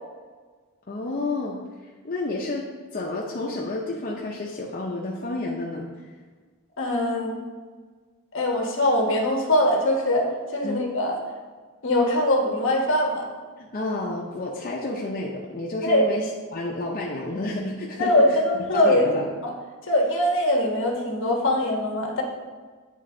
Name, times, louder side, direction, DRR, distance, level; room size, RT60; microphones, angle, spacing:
voice 1, 0.9-1.6 2.0-6.1 10.6-10.8 13.6-19.3, left 2 dB, 40° left, -4 dB, 0.6 m, -30 dB
voice 2, 6.8-7.4 8.3-11.2 11.8-13.3 15.8-16.1 18.0-19.1 19.4-19.5 19.8-22.2, left 1 dB, 60° left, 0 dB, 1.2 m, -22 dB
9.3 x 3.4 x 3.8 m, 1.5 s
head